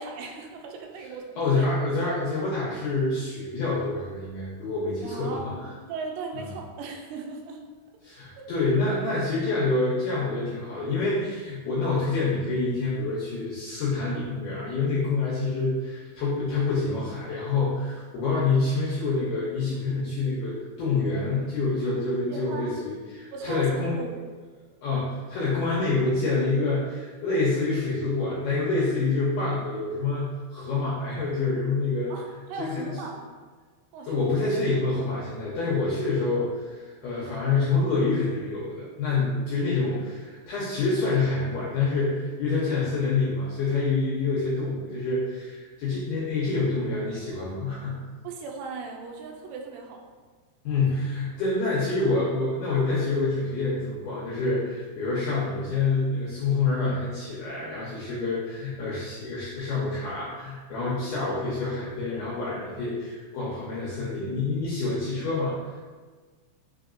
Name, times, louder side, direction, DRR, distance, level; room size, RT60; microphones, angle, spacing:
voice 1, 0.0-1.7 5.0-7.6 8.4-8.5 22.3-22.8 23.3-24.2 32.1-32.2 32.5-33.3 33.9-34.2 48.2-50.1, right 4 dB, 80° right, 1 dB, 2.5 m, -37 dB
voice 2, 1.4-5.5 6.3-6.4 8.0-24.0 24.8-32.1 32.6-33.0 34.1-48.0 50.7-65.7, left 3 dB, 80° left, -7 dB, 1.9 m, -27 dB
5.7 x 3.6 x 2.5 m, 1.4 s
omnidirectional pair, 4.6 m